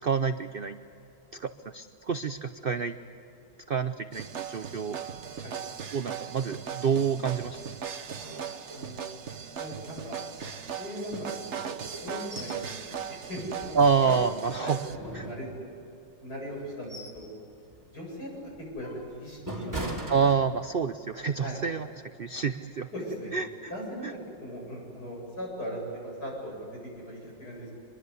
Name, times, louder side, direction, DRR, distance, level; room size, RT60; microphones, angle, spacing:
voice 1, 0.0-0.8 1.3-3.0 3.7-5.0 5.9-7.6 13.7-14.8 15.1-15.3 20.1-21.9 22.2-22.9 23.3-23.7 24.0-24.1, right 6 dB, 80° right, 9 dB, 0.5 m, -28 dB
sound 1, 4.1-15.0, right 7 dB, 45° right, 1.1 m, -38 dB
voice 2, 8.2-9.0 9.6-14.2 14.6-15.5 16.2-17.3 17.9-20.0 21.3-21.6 22.9-23.3 23.7-27.8, equal, 60° left, -2 dB, 8.7 m, -39 dB
sound 2, 12.3-12.6 13.0-13.1 13.6-14.4 14.9-15.9 16.5-17.3 17.7-17.9 18.5-20.9 21.3-21.5, right 1 dB, 10° right, 3.3 m, -39 dB
25.0 x 22.5 x 8.2 m, 2.8 s
omnidirectional pair, 1.9 m